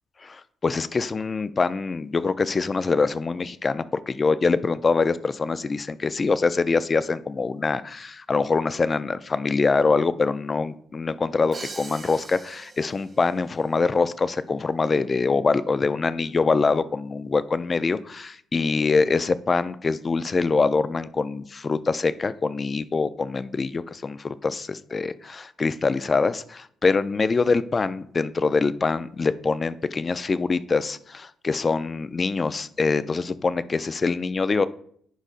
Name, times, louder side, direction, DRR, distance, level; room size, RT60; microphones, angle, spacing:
voice 1, 0.2-34.7, left 4 dB, 30° left, 14 dB, 0.4 m, -24 dB
Crash cymbal, 11.5-13.4, right 3 dB, 35° right, 0.8 m, -41 dB
10.0 x 5.2 x 2.5 m, 0.62 s
cardioid pair, 90°, 0 cm